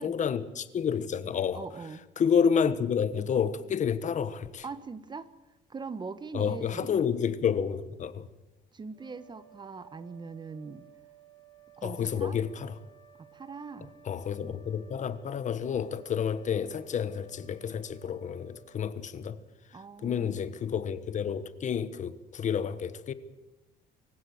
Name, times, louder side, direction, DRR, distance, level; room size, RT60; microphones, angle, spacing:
voice 1, 0.0-1.7 2.2-4.6 6.3-8.3 11.8-12.8 14.0-19.4 19.7-23.1, left 7 dB, 45° left, 1.4 m, -30 dB
voice 2, 1.5-2.0 4.6-5.3 5.7-6.9 8.7-10.8 11.8-12.4 13.2-13.9 19.7-20.4, right 4 dB, 25° right, 1.2 m, -41 dB
sound 1, 8.9-19.5, right 8 dB, 25° left, 4.5 m, -57 dB
24.5 x 15.5 x 7.9 m
cardioid pair, 110°, 17 cm